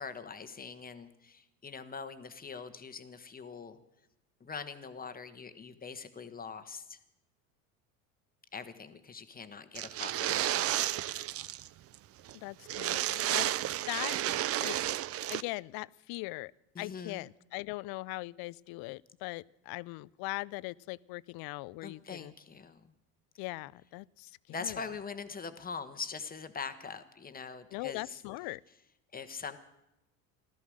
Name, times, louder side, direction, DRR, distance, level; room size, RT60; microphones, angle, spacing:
voice 1, 0.0-3.8 4.4-7.0 8.5-10.9 16.7-17.2 21.8-22.9 24.5-28.2 29.1-29.6, left 5 dB, 20° left, 10 dB, 1.3 m, -43 dB
sound 1, 9.7-11.7 11.9-12.0 12.3-12.4 12.7-15.4, right 13 dB, 35° right, 0.5 m, -32 dB
voice 2, 12.3-13.5 13.9-14.3 14.6-15.0 15.3-16.5 16.8-22.3 23.4-24.8 27.7-28.6, left 22 dB, 60° left, 22 dB, 0.5 m, -40 dB
15.5 x 13.0 x 6.4 m, 0.89 s
supercardioid pair, 100°, 41 cm